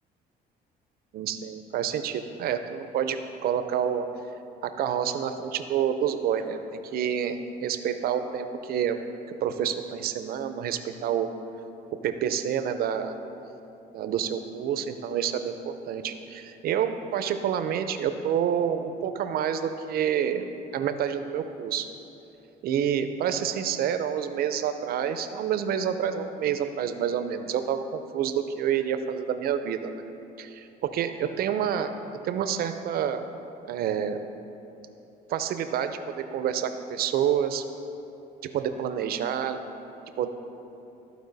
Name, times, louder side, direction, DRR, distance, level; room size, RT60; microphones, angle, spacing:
voice 1, 1.1-4.1 4.6-9.0 9.4-11.3 12.0-13.1 13.9-20.5 20.7-21.9 22.6-29.9 30.4-31.9 32.2-33.2 33.7-34.2 35.3-37.6 38.4-39.6 40.2-40.3, right 8 dB, 65° right, 9 dB, 0.6 m, -28 dB
13.5 x 4.6 x 4.0 m, 2.9 s
cardioid pair, 110°, 17 cm